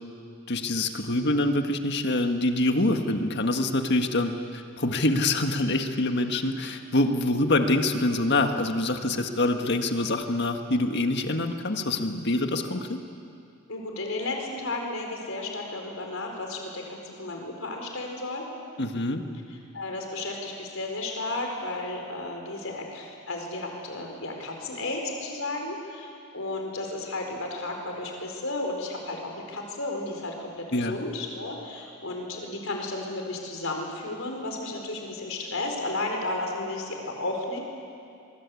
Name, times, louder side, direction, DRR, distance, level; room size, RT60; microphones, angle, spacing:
voice 1, 0.5-13.0 18.8-19.2 30.7-31.0, left 2 dB, 55° left, 5 dB, 1.8 m, -25 dB
voice 2, 13.7-18.5 19.7-37.6, left 2 dB, 70° left, 1 dB, 4.7 m, -33 dB
24.5 x 22.5 x 8.6 m, 2.4 s
head